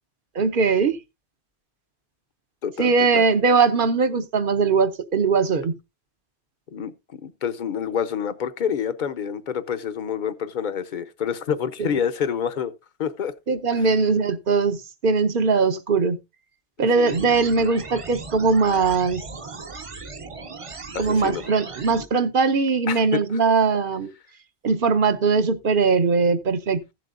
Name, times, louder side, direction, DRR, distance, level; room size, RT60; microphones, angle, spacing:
voice 1, 0.3-1.0 2.8-5.7 13.5-14.8 15.0-16.2 16.8-19.2 21.0-24.1 24.6-26.9, right 4 dB, 55° right, 1.0 m, -20 dB
voice 2, 2.6-3.2 6.7-12.7 13.0-13.3 13.7-13.9 16.8-17.3 20.9-21.4 22.9-23.2, left 8 dB, 50° left, 0.8 m, -28 dB
sound 1, 17.1-22.1, right 3 dB, 35° right, 0.7 m, -38 dB
15.0 x 7.6 x 2.5 m
omnidirectional pair, 1.1 m